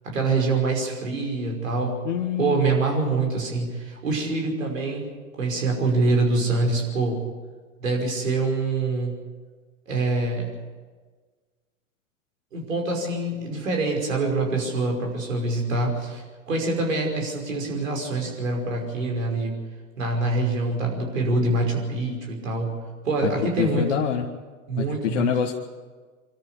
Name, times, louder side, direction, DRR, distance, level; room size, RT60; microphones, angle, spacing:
voice 1, 0.0-2.0 2.4-5.1 5.4-7.2 7.8-9.1 9.9-10.5 12.5-19.6 20.0-22.8 23.0-23.9 24.7-25.3, right 3 dB, 70° right, 1 dB, 5.6 m, -25 dB
voice 2, 2.0-2.6 23.2-23.3 23.6-24.2 24.8-25.5, left 9 dB, 60° left, 2 dB, 1.5 m, -25 dB
24.5 x 13.5 x 8.5 m, 1.4 s
figure-of-eight pair, 90°, 40 cm